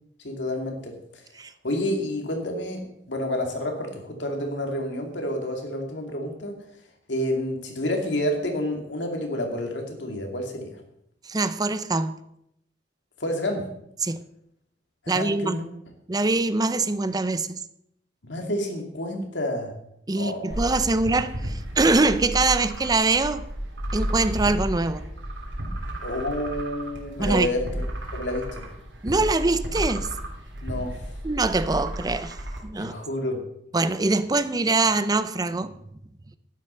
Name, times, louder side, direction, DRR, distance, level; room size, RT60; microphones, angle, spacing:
voice 1, 0.2-1.2 1.6-6.6 7.1-10.8 13.2-13.7 15.0-15.6 18.2-19.7 20.1-20.7 26.0-27.8 28.1-28.7 30.6-31.1 32.8-33.4, left 1 dB, 85° left, 2.4 m, -29 dB
voice 2, 11.2-12.1 14.0-14.2 15.1-15.6 16.1-17.6 20.1-23.4 23.9-25.0 27.2-27.5 29.0-30.1 31.2-32.4 32.6-32.9 33.7-35.8, right 3 dB, 20° right, 0.5 m, -23 dB
sound 1, 20.5-32.6, right 1 dB, 85° right, 3.1 m, -32 dB
11.5 x 9.9 x 5.6 m
head